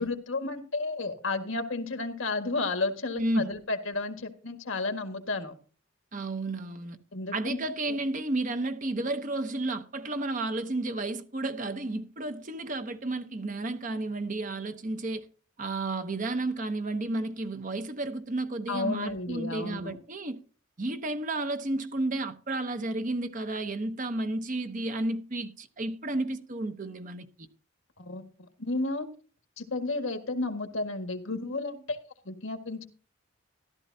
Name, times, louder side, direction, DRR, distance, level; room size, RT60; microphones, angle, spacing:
voice 1, 0.0-5.5 7.1-7.6 7.9-8.0 18.7-20.0 28.0-28.3 28.6-29.1 29.6-32.0 32.3-32.9, left 3 dB, 75° left, 1.7 m, -32 dB
voice 2, 3.2-3.5 6.1-7.0 7.3-15.2 15.6-20.4 20.8-27.3, right 2 dB, 40° right, 0.9 m, -32 dB
14.5 x 12.0 x 2.8 m
head